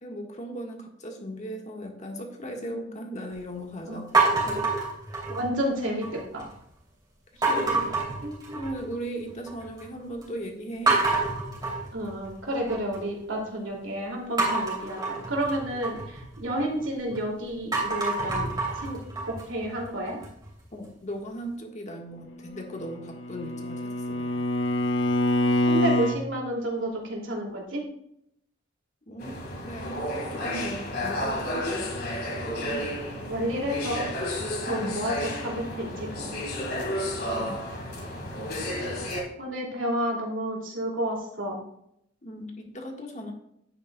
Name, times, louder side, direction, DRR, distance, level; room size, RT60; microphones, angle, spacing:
voice 1, 0.0-4.7 8.5-11.0 20.7-24.5 29.1-31.9 34.7-35.0 37.3-37.6 42.2-43.3, equal, 40° left, 1 dB, 1.6 m, -38 dB
sound 1, 4.1-5.6 6.0-6.5 7.4-8.9 9.3-9.8 10.2-10.3 10.9-13.0 14.4-17.2 17.6-20.5, right 3 dB, 20° right, 2.9 m, -27 dB
voice 2, 5.3-6.4 7.5-7.8 8.2-8.6 11.9-19.0 19.3-20.2 25.7-27.8 32.6-32.8 33.2-34.1 34.6-36.4 37.3-37.5 39.4-41.6, right 1 dB, 85° right, -1 dB, 2.6 m, -31 dB
Bowed string instrument, 22.8-26.2, left 1 dB, 75° left, 0.7 m, -25 dB
sound 2, 29.2-39.2, left 1 dB, 55° left, 2.0 m, -32 dB
10.5 x 8.6 x 2.3 m, 0.75 s
head